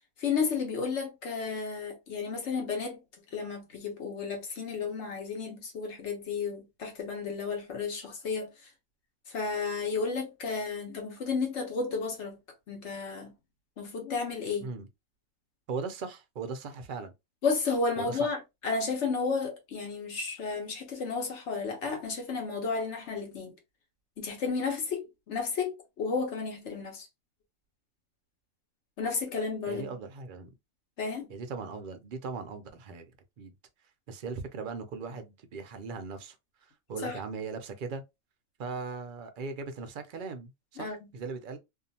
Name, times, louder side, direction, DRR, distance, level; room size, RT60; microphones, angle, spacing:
voice 1, 0.2-3.0 3.3-8.5 9.3-12.4 12.7-13.3 13.8-14.7 17.4-23.5 24.2-27.1 29.0-30.0 31.0-31.3 37.0-37.2 40.8-41.0, left 4 dB, 65° left, 1.2 m, -32 dB
voice 2, 15.7-17.1 18.0-18.3 29.7-30.5 31.3-33.1 33.4-33.5 34.1-36.4 36.9-38.0 38.6-41.6, right 4 dB, 60° right, 0.5 m, -38 dB
2.7 x 2.4 x 2.6 m
omnidirectional pair, 1.3 m